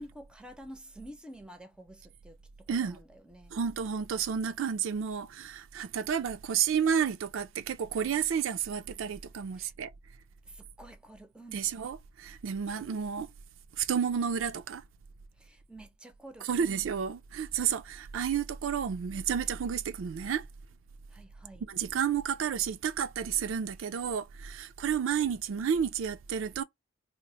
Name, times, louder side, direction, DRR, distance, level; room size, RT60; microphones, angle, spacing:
voice 1, 0.0-3.5 9.6-9.7 10.5-11.7 15.4-16.9 21.1-21.7, right 1 dB, 5° right, 0.5 m, -49 dB
voice 2, 2.7-3.0 3.5-9.9 11.5-13.3 13.8-14.8 16.4-20.5 21.7-26.6, right 7 dB, 80° right, 0.4 m, -31 dB
2.8 x 2.0 x 4.1 m
head